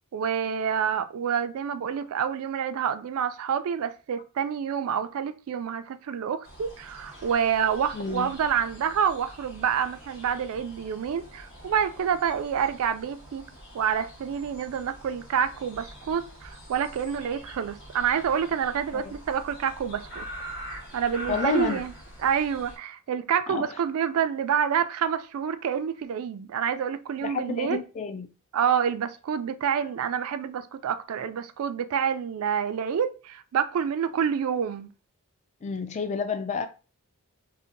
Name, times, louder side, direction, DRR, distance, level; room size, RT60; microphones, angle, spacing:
voice 1, 0.1-13.4 13.7-20.3 20.9-21.9 22.2-27.8 28.5-34.9, right 7 dB, 70° right, 0.3 m, -28 dB
sound 1, 6.4-22.8, right 1 dB, 60° left, 1.2 m, -44 dB
voice 2, 7.9-8.3 18.9-19.1 21.3-21.8 23.5-23.7 27.2-28.3 35.6-36.7, left 5 dB, 30° left, 0.3 m, -30 dB
2.7 x 2.1 x 3.8 m
head